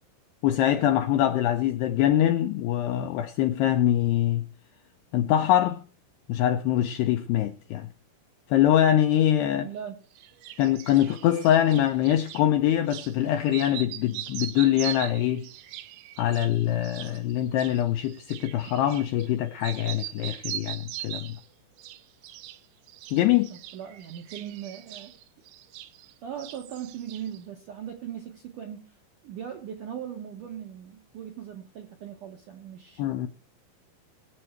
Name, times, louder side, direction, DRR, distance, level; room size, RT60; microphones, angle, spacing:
voice 1, 0.4-4.4 5.1-5.8 6.3-7.9 8.5-9.7 10.6-15.5 16.2-21.4 23.1-23.5 33.0-33.3, left 11 dB, 80° left, 2.4 m, -23 dB
voice 2, 9.5-10.0 23.5-25.1 26.2-28.8 29.2-33.0, right 9 dB, 70° right, 2.0 m, -39 dB
sound 1, 10.2-12.5 12.9-13.1 13.5-19.3 19.6-21.4 21.8-22.6 22.9-26.1 26.4-27.4, right 13 dB, 90° right, 3.4 m, -40 dB
21.5 x 7.8 x 4.4 m
omnidirectional pair, 5.5 m